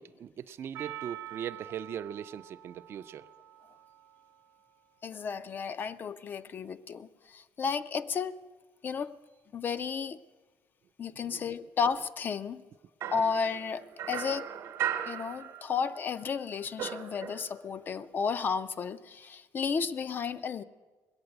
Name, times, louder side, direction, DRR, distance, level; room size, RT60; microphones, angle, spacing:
voice 1, 0.0-3.3 11.2-11.5 15.0-15.1, right 9 dB, 45° right, 0.4 m, -40 dB
Percussion, 0.7-5.1, right 15 dB, 85° right, 0.8 m, -47 dB
voice 2, 5.0-8.4 8.8-9.2 9.5-10.2 11.0-12.6 13.1-14.5 15.1-20.6, left 6 dB, 35° left, 0.4 m, -33 dB
sound 1, 13.0-16.0 16.3-17.8, right 10 dB, 65° right, 1.0 m, -37 dB
20.5 x 8.6 x 7.9 m
cardioid pair, 150°, 6 cm